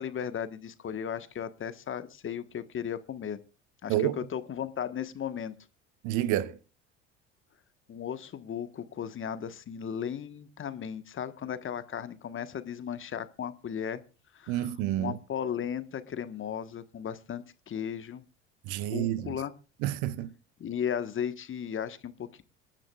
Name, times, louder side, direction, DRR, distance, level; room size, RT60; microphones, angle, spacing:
voice 1, 0.0-3.4 3.8-5.5 7.9-14.0 14.3-14.7 15.0-18.2 18.8-19.5 20.6-22.4, left 8 dB, 35° left, 1.3 m, -36 dB
voice 2, 6.0-6.6 14.5-15.2 18.6-19.4 19.8-20.3, right 13 dB, 60° right, 1.0 m, -29 dB
26.0 x 10.5 x 2.4 m
hypercardioid pair, 65°, 35 cm